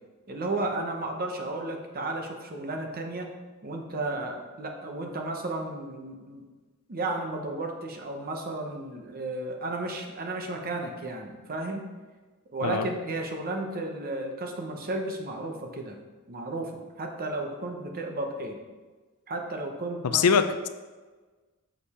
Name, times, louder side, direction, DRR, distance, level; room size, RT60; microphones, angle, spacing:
voice 1, 0.3-3.3 3.6-6.4 6.9-11.8 12.5-16.0 16.3-18.6 19.3-20.2, right 2 dB, 40° right, 3 dB, 0.9 m, -33 dB
voice 2, 20.0-20.7, left 6 dB, 75° left, 10 dB, 0.5 m, -23 dB
6.8 x 5.2 x 4.3 m, 1.3 s
head